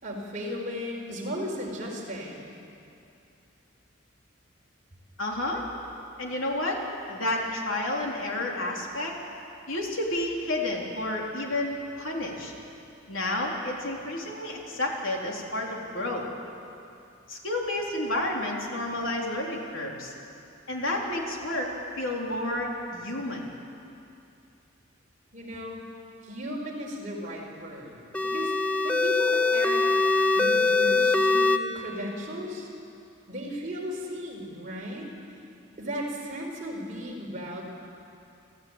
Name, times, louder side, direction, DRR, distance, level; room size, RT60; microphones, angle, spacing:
voice 1, 0.0-2.5 25.3-25.8 26.2-28.0 28.2-28.5 28.8-29.9 30.3-32.7 33.3-35.4 35.8-37.6, equal, 40° right, -2 dB, 4.5 m, -35 dB
voice 2, 5.2-5.7 6.2-6.8 7.1-9.1 9.7-12.5 13.1-16.3 17.3-20.1 20.7-21.7 22.0-23.4, left 1 dB, 70° left, -1 dB, 3.9 m, -30 dB
sound 1, 28.1-31.6, left 3 dB, 5° left, 0.6 m, -23 dB
29.0 x 14.0 x 9.0 m, 2.7 s
head